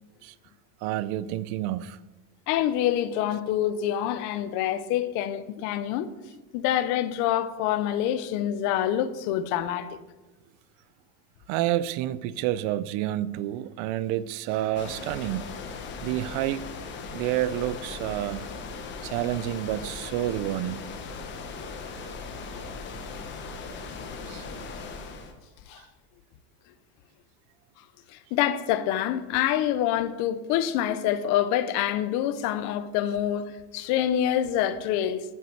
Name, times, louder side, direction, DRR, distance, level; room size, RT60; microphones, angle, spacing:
voice 1, 0.8-2.0 11.5-15.5 16.0-16.7 17.1-18.5 19.0-20.8 24.3-24.4 25.7-25.9, right 13 dB, 60° right, 0.5 m, -29 dB
voice 2, 2.5-6.1 6.5-9.9 25.7-25.8 28.1-35.2, left 11 dB, 55° left, 0.8 m, -26 dB
sound 1, 14.7-25.3, left 4 dB, 35° left, 1.2 m, -38 dB
9.2 x 6.0 x 7.6 m
cardioid pair, 160°, 34 cm